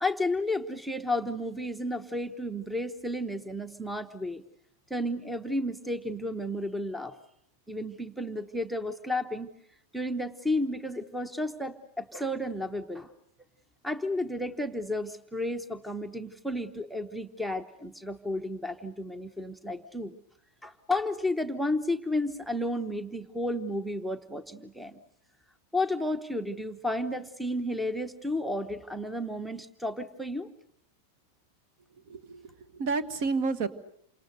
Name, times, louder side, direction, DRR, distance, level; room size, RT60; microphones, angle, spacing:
voice 1, 0.0-4.4 4.9-7.2 7.7-9.5 9.9-13.1 13.8-20.2 20.6-25.0 25.7-30.5, left 1 dB, ahead, 14 dB, 1.0 m, -32 dB
voice 2, 32.1-33.7, right 4 dB, 45° right, 14 dB, 1.6 m, -30 dB
28.5 x 26.0 x 6.7 m, 0.69 s
figure-of-eight pair, 90°, 0 cm